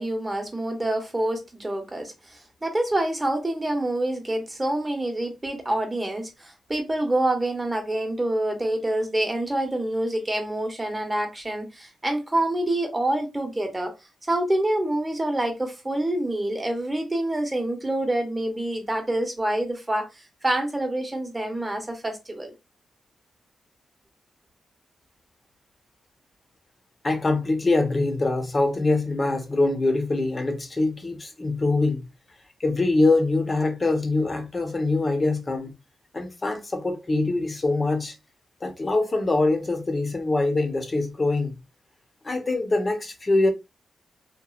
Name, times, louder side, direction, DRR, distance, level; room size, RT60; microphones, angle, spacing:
voice 1, 0.0-13.9 14.3-22.5, right 1 dB, 20° right, 0.9 m, -27 dB
voice 2, 27.0-32.1 32.6-35.7 36.1-38.1 38.6-41.6 42.2-43.5, left 2 dB, 30° left, 0.8 m, -24 dB
3.0 x 2.3 x 2.4 m
cardioid pair, 85°, 0 cm